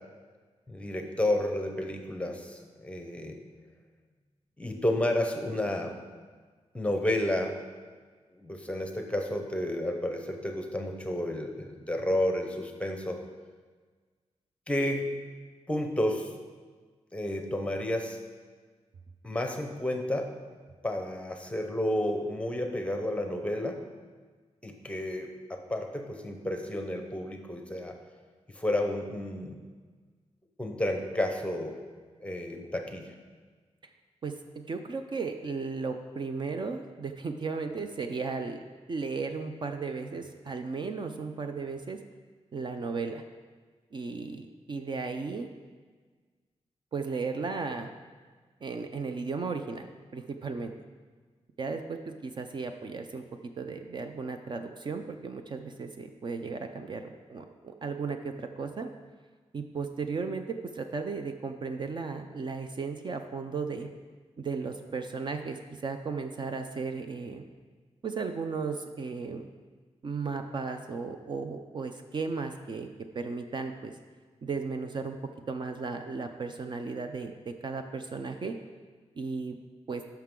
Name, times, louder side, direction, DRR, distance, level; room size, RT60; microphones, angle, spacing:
voice 1, 0.7-3.4 4.6-6.0 6.7-7.6 8.4-13.2 14.7-15.1 15.7-16.3 17.1-18.2 19.2-20.3 20.8-23.8 24.6-27.9 28.5-29.6 30.6-31.8 32.2-33.1, left 1 dB, 10° left, 4 dB, 0.8 m, -31 dB
voice 2, 34.7-38.6 38.9-42.0 42.5-43.2 43.9-45.5 46.9-47.9 48.6-49.9 50.1-50.7 51.6-53.2 53.6-58.9 59.5-60.5 60.7-63.9 64.4-67.4 68.0-69.5 70.0-72.9 73.1-73.9 74.4-75.2 75.5-78.5 79.1-79.6 79.9-80.0, right 4 dB, 40° right, 6 dB, 0.5 m, -35 dB
13.0 x 5.7 x 3.7 m, 1.5 s
wide cardioid pair, 175°, 12 cm